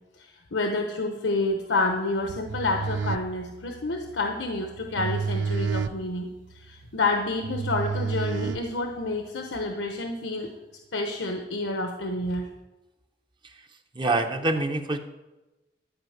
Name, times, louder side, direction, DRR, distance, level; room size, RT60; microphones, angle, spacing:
voice 1, 0.2-6.3 6.5-10.5 10.9-12.5, left 2 dB, 85° left, 3 dB, 1.0 m, -29 dB
sound 1, 2.2-9.2, right 5 dB, 80° right, 0.5 m, -31 dB
voice 2, 13.9-15.0, right 2 dB, 25° right, 6 dB, 0.8 m, -25 dB
12.5 x 5.1 x 7.8 m, 1.0 s
head